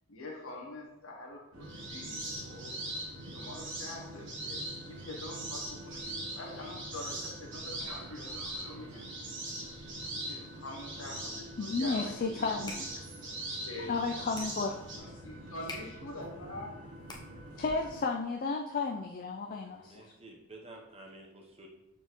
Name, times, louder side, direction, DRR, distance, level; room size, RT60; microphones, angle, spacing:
voice 1, 0.1-2.7 3.2-4.6 4.9-9.0 10.2-12.7 13.6-13.9 15.0-16.7, left 2 dB, 60° left, -1 dB, 1.2 m, -45 dB
sound 1, 1.5-18.0, right 1 dB, 75° right, 1.1 m, -48 dB
sound 2, 1.6-15.0, right 1 dB, 50° right, 1.5 m, -41 dB
voice 2, 11.6-12.9 13.8-14.8 17.6-20.0, left 4 dB, 40° left, 1 dB, 0.3 m, -33 dB
sound 3, 12.5-17.6, left 3 dB, 20° left, 0.7 m, -50 dB
voice 3, 19.5-21.7, right 2 dB, 25° right, 0 dB, 0.8 m, -51 dB
7.2 x 4.3 x 3.1 m, 0.94 s
head